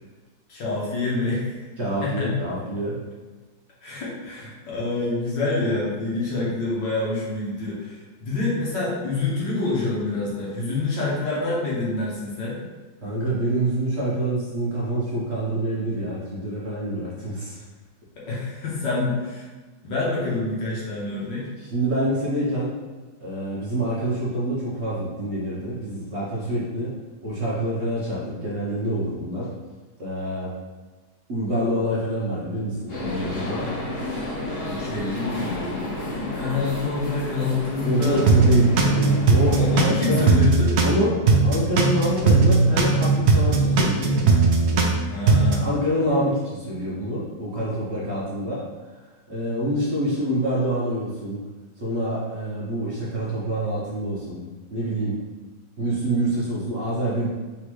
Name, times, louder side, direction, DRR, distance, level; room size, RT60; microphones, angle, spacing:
voice 1, 0.5-1.6 2.0-2.3 3.8-12.6 18.2-19.4 19.8-21.4 34.7-35.7 36.1-38.2 39.5-40.8 45.0-45.7, left 3 dB, 80° left, -6 dB, 1.9 m, -27 dB
voice 2, 1.8-3.0 13.0-17.6 21.6-22.7 23.2-26.9 27.2-29.5 30.0-30.5 31.3-33.7 37.8-40.3 40.8-44.3 45.6-48.6 49.3-51.4 51.8-54.4 54.7-55.2 55.8-57.3, right 1 dB, 45° right, -7 dB, 1.0 m, -26 dB
sound 1, 32.9-39.8, left 1 dB, 40° left, 1.1 m, -31 dB
sound 2, 38.0-41.0 41.3-45.0 45.3-45.6, right 4 dB, 85° right, 0.6 m, -18 dB
4.2 x 3.7 x 3.1 m, 1.3 s
omnidirectional pair, 1.9 m